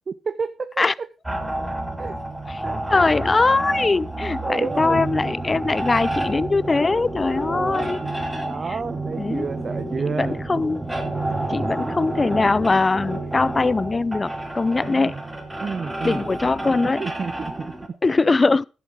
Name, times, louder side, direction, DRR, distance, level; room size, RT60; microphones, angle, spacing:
voice 1, 0.1-0.8 2.0-2.2 2.6-3.2 4.4-5.0 5.6-5.9 7.2-10.4 11.4-11.7 14.8-15.2 15.6-16.3 17.0-18.0, right 5 dB, 50° right, 0.6 m, -31 dB
sound 1, 1.2-17.9, right 1 dB, 10° right, 2.5 m, -29 dB
voice 2, 2.9-8.0 9.2-9.5 10.1-10.8 11.5-15.1 16.0-17.0 18.0-18.7, left 3 dB, 30° left, 0.4 m, -21 dB
11.0 x 6.9 x 4.7 m
supercardioid pair, 50°, 0 cm